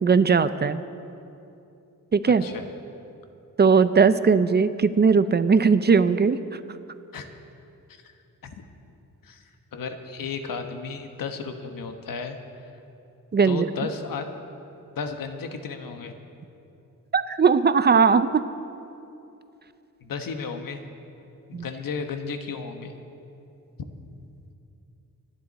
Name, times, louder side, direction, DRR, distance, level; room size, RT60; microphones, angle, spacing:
voice 1, 0.0-0.8 2.1-2.4 3.6-6.6 13.3-13.7 17.1-18.4 21.5-21.6, right 5 dB, 30° right, 12 dB, 0.5 m, -19 dB
voice 2, 9.7-12.4 13.4-14.3 15.0-16.1 20.0-20.8 21.5-22.9, left 5 dB, 80° left, 6 dB, 1.3 m, -34 dB
25.5 x 10.5 x 4.1 m, 2.7 s
wide cardioid pair, 120°, 33 cm